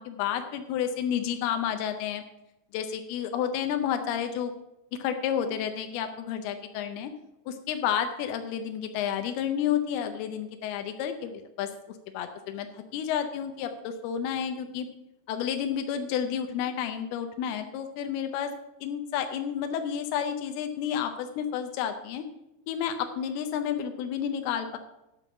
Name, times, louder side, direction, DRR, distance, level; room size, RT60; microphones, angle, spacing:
voice 1, 0.0-2.2 2.7-4.5 5.0-7.1 7.5-11.7 12.1-14.9 15.3-18.5 18.8-22.2 22.7-24.8, left 8 dB, 85° left, 7 dB, 2.3 m, -30 dB
12.0 x 5.3 x 6.8 m, 0.92 s
omnidirectional pair, 5.3 m